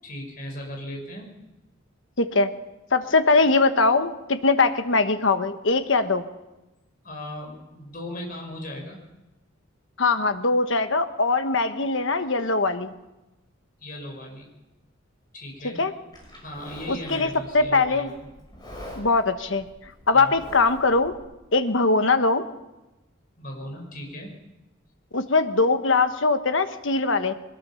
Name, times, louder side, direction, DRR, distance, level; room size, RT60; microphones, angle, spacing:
voice 1, 0.0-1.3 7.0-9.0 13.8-14.5 15.3-15.8 16.4-18.1 20.1-20.4 23.4-24.4, left 1 dB, 40° left, 1 dB, 5.5 m, -37 dB
voice 2, 2.2-2.5 2.9-6.2 10.0-12.9 15.8-15.9 16.9-18.1 19.0-19.7 20.1-21.1 21.5-22.4 25.1-27.3, left 3 dB, 65° left, 9 dB, 1.3 m, -21 dB
Livestock farm animals working animals, 16.1-21.2, equal, 20° left, 6.1 m, -45 dB
22.0 x 20.5 x 5.8 m, 1.0 s
head